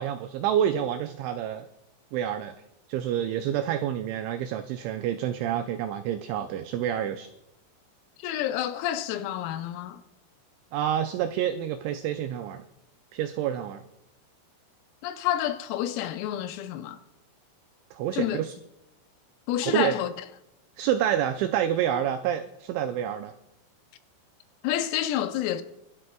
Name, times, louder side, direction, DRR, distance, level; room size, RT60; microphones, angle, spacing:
voice 1, 0.0-1.7 2.1-2.6 2.9-7.3 10.7-12.6 13.1-13.8 17.9-18.5 19.6-19.9 20.8-23.3, right 10 dB, 85° right, 2.6 m, -28 dB
voice 2, 8.2-10.0 15.0-17.0 18.1-18.4 19.5-20.1 24.6-25.6, left 12 dB, 85° left, 3.3 m, -29 dB
26.0 x 12.5 x 2.3 m
omnidirectional pair, 5.9 m